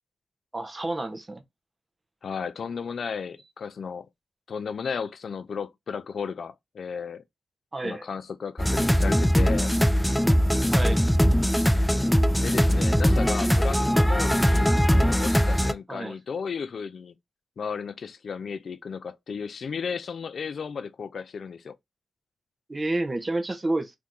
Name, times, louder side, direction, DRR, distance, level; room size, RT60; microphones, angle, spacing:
voice 1, 0.5-1.4 7.7-8.1 10.7-11.0 15.9-16.1 22.7-23.9, right 2 dB, 30° right, 0.8 m, -29 dB
voice 2, 2.2-4.1 4.5-7.2 7.8-9.7 12.4-17.2 17.6-21.8, left 6 dB, 70° left, 0.4 m, -34 dB
sound 1, 8.6-15.7, equal, 5° left, 0.4 m, -21 dB
2.7 x 2.6 x 3.6 m
cardioid pair, 60°, 0 cm